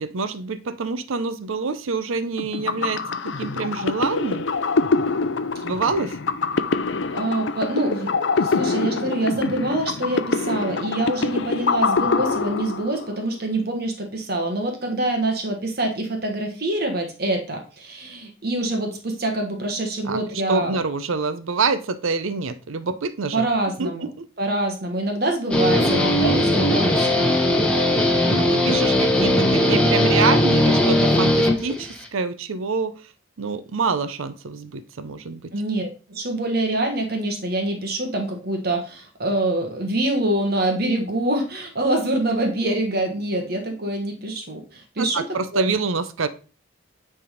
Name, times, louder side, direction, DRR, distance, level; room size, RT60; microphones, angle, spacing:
voice 1, 0.0-4.5 5.6-6.2 20.1-23.5 23.8-23.9 24.2-24.3 28.4-32.9 33.4-35.5 45.0-46.3, right 4 dB, 80° right, 13 dB, 0.6 m, -26 dB
sound 1, 2.4-13.2, left 4 dB, 60° left, 0.5 m, -25 dB
voice 2, 7.1-20.8 23.3-24.1 24.4-27.2 35.5-45.3 45.5-45.8, right 1 dB, 50° right, 3 dB, 1.2 m, -25 dB
Guitar, 25.5-32.1, left 1 dB, 5° left, 1.1 m, -19 dB
9.5 x 3.5 x 5.0 m, 0.36 s
head